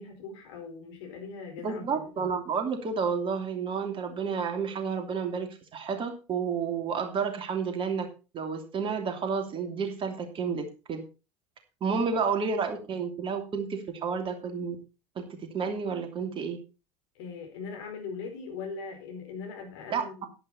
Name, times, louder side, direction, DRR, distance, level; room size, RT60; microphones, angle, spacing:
voice 1, 0.0-2.3 11.8-12.0 17.1-20.3, left 5 dB, 60° left, 2 dB, 4.8 m, -40 dB
voice 2, 1.6-8.1 8.3-11.0 11.8-14.8 15.2-15.3 15.5-16.6 19.9-20.3, right 5 dB, 35° right, 5 dB, 2.8 m, -30 dB
11.0 x 11.0 x 4.2 m, 0.31 s
figure-of-eight pair, 75°, 16 cm